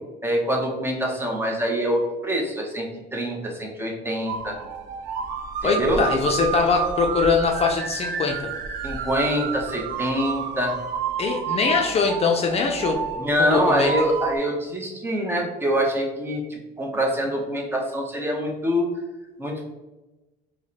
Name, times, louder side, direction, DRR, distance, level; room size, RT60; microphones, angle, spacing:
voice 1, 0.2-4.6 5.6-6.0 8.8-10.7 13.2-18.9 19.4-19.7, equal, 15° right, 0 dB, 0.7 m, -25 dB
sound 1, 4.3-14.4, right 6 dB, 85° right, 0.5 m, -30 dB
voice 2, 5.6-8.5 11.2-13.0 13.4-13.9, left 4 dB, 35° left, 2 dB, 0.4 m, -22 dB
4.6 x 2.1 x 2.8 m, 1.1 s
cardioid pair, 110°, 17 cm